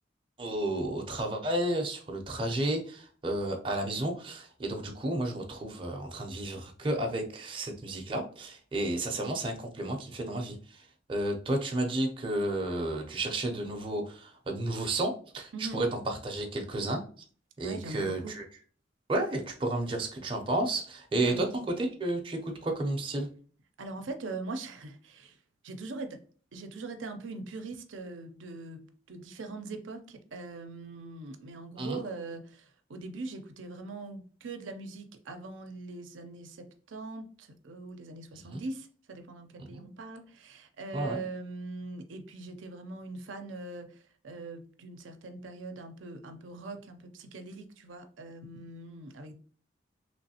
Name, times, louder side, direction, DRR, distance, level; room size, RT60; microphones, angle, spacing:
voice 1, 0.4-10.8 11.1-17.0 17.6-18.4 19.1-21.5 21.8-23.3 31.8-32.0 38.5-38.6 39.7-39.8 40.9-41.2, right 1 dB, 25° right, 2 dB, 0.6 m, -32 dB
voice 2, 17.6-18.3 21.2-21.5 23.8-25.4 25.6-26.2 26.5-49.3, right 3 dB, 85° right, 6 dB, 0.5 m, -42 dB
3.1 x 3.0 x 2.8 m, 0.42 s
head